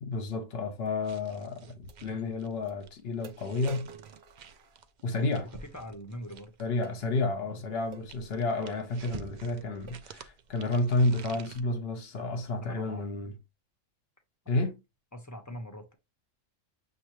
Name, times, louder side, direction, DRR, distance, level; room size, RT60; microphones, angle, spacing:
voice 1, 0.0-3.9 5.0-5.5 6.6-13.3 14.5-14.8, left 2 dB, 55° left, 1.0 m, -31 dB
sound 1, 0.9-1.0 1.9-2.0 2.7-2.8 3.2-5.2 6.8-7.0 7.9-8.1 8.9-9.1 9.5-9.6 9.9-10.2 10.7-11.0, right 6 dB, 60° right, 0.8 m, -49 dB
sound 2, 1.0-6.8 7.6-11.6, right 6 dB, 90° right, 0.4 m, -49 dB
voice 2, 5.6-6.6 12.6-13.0 14.5-14.6 15.1-15.9, equal, 20° left, 0.6 m, -42 dB
6.4 x 2.6 x 2.9 m
omnidirectional pair, 1.4 m